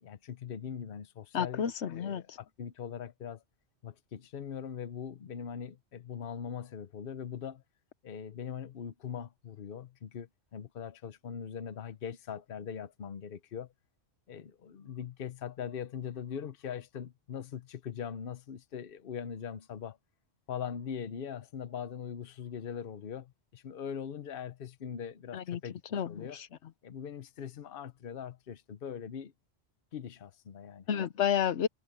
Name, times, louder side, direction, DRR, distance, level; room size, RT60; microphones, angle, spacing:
voice 1, 0.0-1.6 1.9-3.4 3.8-7.6 8.0-13.7 14.3-20.0 20.5-25.8 26.1-26.4 26.8-29.3 29.9-30.9, left 8 dB, 55° left, 1.0 m, -41 dB
voice 2, 1.3-2.4 25.3-25.6 25.9-26.5 30.9-31.7, left 8 dB, 80° left, 1.1 m, -31 dB
omnidirectional pair, 1.2 m